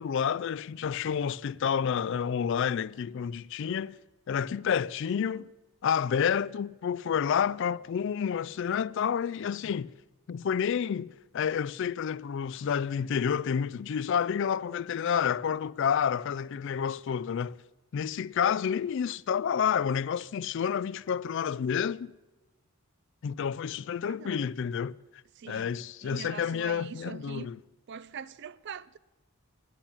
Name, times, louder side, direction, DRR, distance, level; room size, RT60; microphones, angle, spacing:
voice 1, 0.0-4.0 4.3-5.5 5.8-9.9 10.3-17.6 17.9-22.1 23.2-25.0 25.4-27.6, left 7 dB, 55° left, 0.3 m, -29 dB
voice 2, 24.0-24.5 25.4-27.5 27.9-29.0, right 7 dB, 50° right, 0.4 m, -43 dB
10.5 x 10.0 x 8.6 m
head